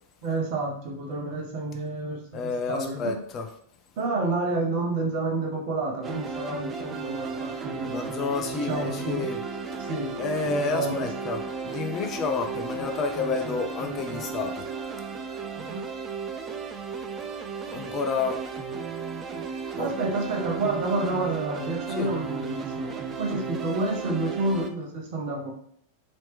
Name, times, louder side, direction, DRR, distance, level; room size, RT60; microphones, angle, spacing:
voice 1, 0.2-3.2 4.0-8.1 8.6-9.2 9.9-10.1 10.4-11.1 15.5-15.9 19.8-22.9 23.2-25.5, right 2 dB, 50° right, 0 dB, 0.8 m, -29 dB
voice 2, 2.3-3.5 7.9-9.4 9.8-9.9 10.2-14.7 17.7-18.4 19.8-19.9 21.9-22.1, left 4 dB, 30° left, 5 dB, 0.5 m, -30 dB
sound 1, 6.0-24.7, right 5 dB, 25° right, 0.4 m, -34 dB
3.1 x 2.9 x 3.1 m, 0.62 s
figure-of-eight pair, 90°, 0 cm